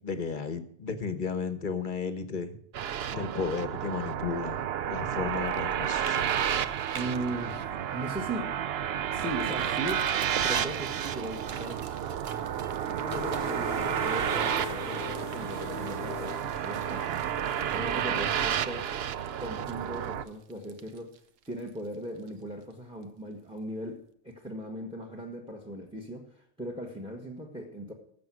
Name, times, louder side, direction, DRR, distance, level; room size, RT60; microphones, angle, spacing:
voice 1, 0.0-2.6 3.1-4.6 4.9-6.3, left 5 dB, 45° left, 12 dB, 1.0 m, -33 dB
sound 1, 2.7-20.2, right 9 dB, 60° right, 0.8 m, -31 dB
sound 2, 5.5-5.7 6.0-6.2 6.5-7.3 7.7-7.8 8.2-8.3 9.1-22.7 23.0-23.1, right 7 dB, 75° right, 1.2 m, -46 dB
voice 2, 6.9-8.5 9.1-10.0 10.4-11.9 12.9-17.2 17.7-18.9 19.4-21.2 21.5-27.9, right 1 dB, 5° right, 4 dB, 1.3 m, -38 dB
sound 3, 13.1-19.4, left 9 dB, 85° left, 1.0 m, -43 dB
15.5 x 6.9 x 6.2 m, 0.65 s
omnidirectional pair, 1.3 m